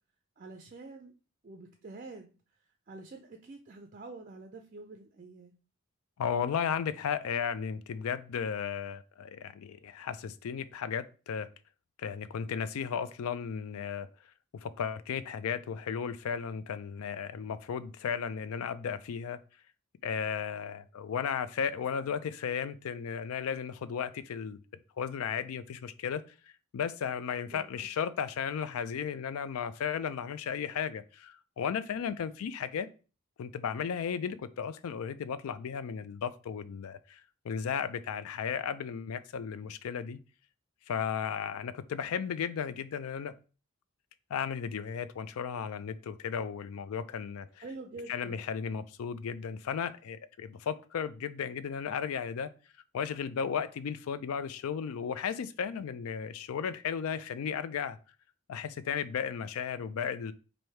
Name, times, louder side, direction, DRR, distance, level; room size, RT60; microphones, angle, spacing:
voice 1, 0.4-1.1 1.4-2.3 2.9-5.5 22.0-22.1 27.5-27.9 47.6-48.4, right 3 dB, 35° right, 0.4 m, -47 dB
voice 2, 6.2-11.5 12.0-14.1 14.5-19.4 20.0-24.6 25.0-26.2 26.7-32.9 33.4-40.2 40.9-43.4 44.3-47.6 48.1-52.5 52.9-58.0 58.5-60.3, left 7 dB, 80° left, 0.3 m, -35 dB
3.2 x 2.6 x 4.3 m
head